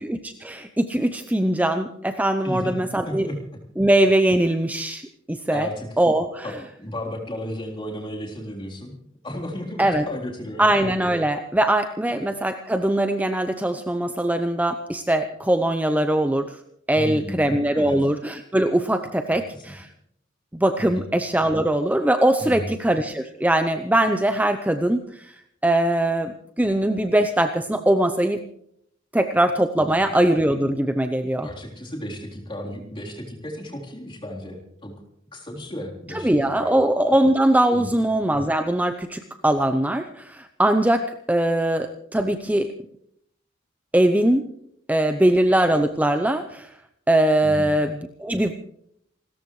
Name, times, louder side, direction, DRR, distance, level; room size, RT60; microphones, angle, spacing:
voice 1, 0.0-3.3 3.8-5.0 5.3-5.7 6.0-6.5 9.8-10.0 10.6-16.5 16.9-19.9 20.5-25.0 25.6-28.4 29.1-31.5 36.2-42.7 43.9-44.4 44.9-46.7 47.1-48.5, right 1 dB, 10° right, 7 dB, 0.6 m, -21 dB
voice 2, 2.4-3.4 5.5-6.1 6.4-8.9 9.2-10.6 12.1-12.2 16.9-18.0 19.3-19.7 20.8-21.1 22.4-22.7 29.8-30.2 31.4-34.9 35.3-36.7 37.7-38.0 47.4-47.7, left 1 dB, 25° left, -1 dB, 3.7 m, -34 dB
28.5 x 13.5 x 3.2 m, 0.70 s
head